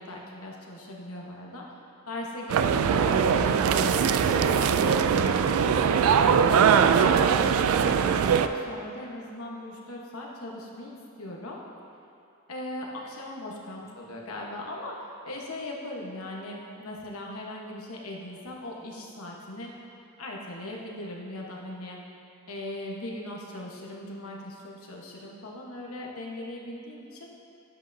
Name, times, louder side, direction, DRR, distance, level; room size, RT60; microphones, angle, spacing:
voice 1, 0.0-1.6 2.1-5.7 6.1-11.6 12.5-19.7 20.2-22.0 22.5-27.3, left 1 dB, 80° left, -2 dB, 1.2 m, -39 dB
sound 1, 2.5-8.5, right 7 dB, 75° right, 0.3 m, -21 dB
11.0 x 7.9 x 2.7 m, 2.7 s
head